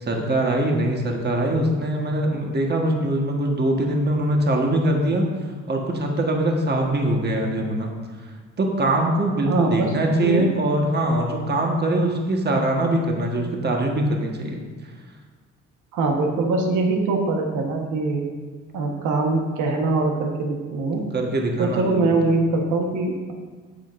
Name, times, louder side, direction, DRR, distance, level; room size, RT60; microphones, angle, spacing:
voice 1, 0.0-5.3 5.7-7.9 8.6-14.6 21.1-22.1, right 1 dB, 35° right, 1 dB, 1.4 m, -22 dB
voice 2, 9.5-10.4 15.9-18.2 18.7-21.0 21.6-23.3, right 3 dB, 90° right, 2 dB, 1.3 m, -23 dB
10.0 x 7.6 x 2.6 m, 1.5 s
cardioid pair, 90°, 30 cm